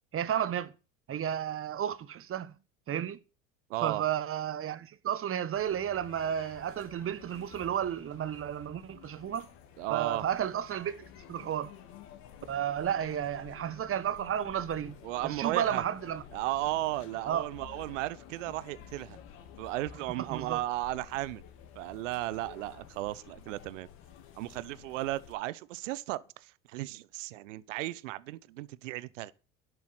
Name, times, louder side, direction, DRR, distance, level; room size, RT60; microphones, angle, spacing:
voice 1, 0.1-0.7 1.1-2.5 2.9-3.2 3.8-9.5 9.9-11.7 12.5-15.0 15.2-16.2 17.3-17.5 20.3-20.6, right 9 dB, 35° right, 1.2 m, -32 dB
voice 2, 3.7-4.0 9.8-10.2 15.0-15.8 16.3-19.2 19.6-21.4 21.7-23.9 24.4-29.3, right 17 dB, 70° right, 0.9 m, -35 dB
sound 1, 5.5-25.3, left 8 dB, 60° left, 3.3 m, -52 dB
11.5 x 8.2 x 8.8 m
hypercardioid pair, 70°, 39 cm